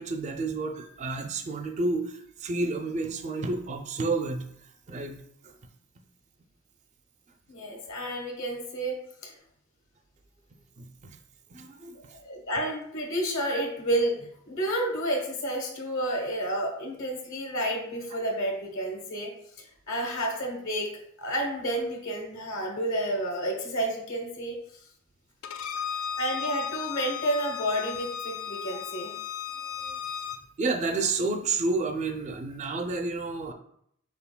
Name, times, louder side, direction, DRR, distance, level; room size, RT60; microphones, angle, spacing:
voice 1, 0.0-5.2 5.4-5.5 10.8-11.2 11.5-12.2 28.7-28.8 29.6-30.0 30.6-33.5, right 3 dB, 35° right, 4 dB, 0.4 m, -31 dB
voice 2, 7.5-9.3 11.9-19.3 19.9-24.5 26.2-29.1, right 1 dB, 65° left, 0 dB, 1.1 m, -30 dB
Bowed string instrument, 25.4-30.4, left 8 dB, 85° left, 0.4 m, -35 dB
5.8 x 3.7 x 2.2 m, 0.71 s
head